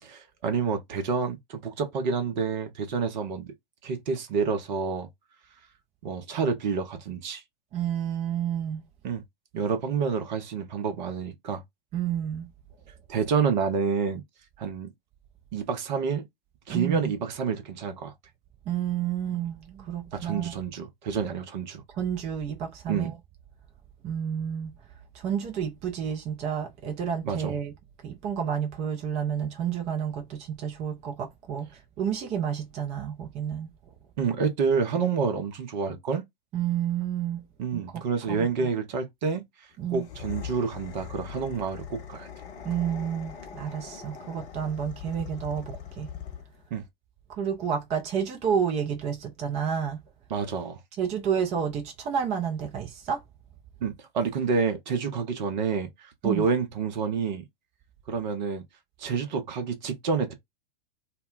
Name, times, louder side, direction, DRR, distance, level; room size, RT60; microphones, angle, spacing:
voice 1, 0.0-3.5 3.8-5.1 6.0-7.4 9.0-9.2 9.5-11.6 13.1-14.2 14.6-14.9 15.5-16.3 16.7-18.1 20.1-21.8 22.9-23.1 27.2-27.5 34.2-36.2 37.6-39.4 39.9-42.3 46.7-46.8 50.3-50.8 53.8-57.4 58.1-58.6 59.0-60.3, right 5 dB, 50° right, 0.8 m, -28 dB
voice 2, 7.7-8.8 11.9-12.5 16.7-17.1 18.7-20.6 21.9-23.1 24.0-24.7 25.1-27.7 28.0-33.7 36.5-37.5 37.7-38.7 39.8-40.1 42.6-46.1 47.4-50.0 51.0-53.2 56.2-56.5, right 8 dB, 20° right, 0.6 m, -30 dB
sound 1, 39.9-46.7, left 8 dB, 25° left, 0.6 m, -41 dB
2.3 x 2.1 x 3.7 m
figure-of-eight pair, 100°, 29 cm